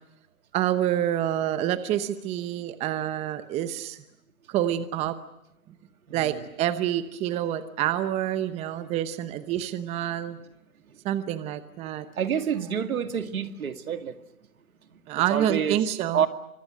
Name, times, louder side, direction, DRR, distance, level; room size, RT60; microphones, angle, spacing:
voice 1, 0.5-4.0 4.5-5.2 6.1-10.4 11.0-12.1 15.1-16.3, right 11 dB, 15° right, 0.9 m, -27 dB
voice 2, 6.1-6.4 12.2-14.2 15.3-15.8 16.1-16.3, right 8 dB, 70° right, 2.3 m, -28 dB
28.5 x 25.0 x 6.5 m
hypercardioid pair, 140°, 44 cm